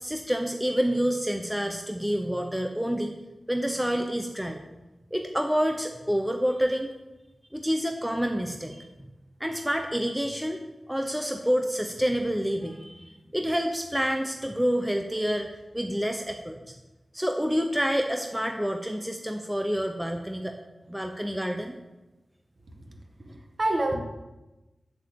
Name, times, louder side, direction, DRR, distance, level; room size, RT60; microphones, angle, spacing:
voice 1, 0.0-3.1 3.5-4.6 5.1-6.9 7.5-8.8 9.4-10.6 10.9-13.1 13.3-15.5 15.7-16.7 17.1-20.5 20.9-21.8, equal, 5° right, 4 dB, 0.8 m, -28 dB
voice 2, 22.9-24.0, right 2 dB, 45° right, 2 dB, 1.7 m, -29 dB
8.6 x 7.6 x 6.9 m, 1.1 s
wide cardioid pair, 105°, 0 cm